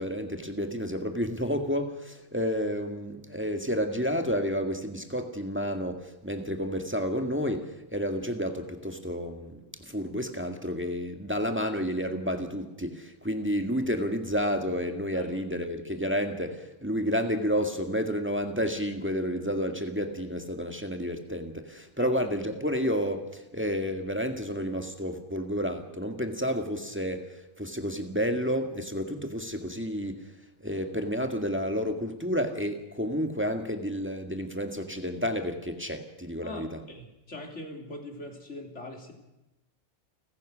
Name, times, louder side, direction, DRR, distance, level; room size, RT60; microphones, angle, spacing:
voice 1, 0.0-30.2 30.6-36.8, equal, 10° right, 1.7 m, -30 dB
voice 2, 36.4-39.2, left 2 dB, 90° left, 3.6 m, -42 dB
29.5 x 15.0 x 6.3 m
omnidirectional pair, 1.2 m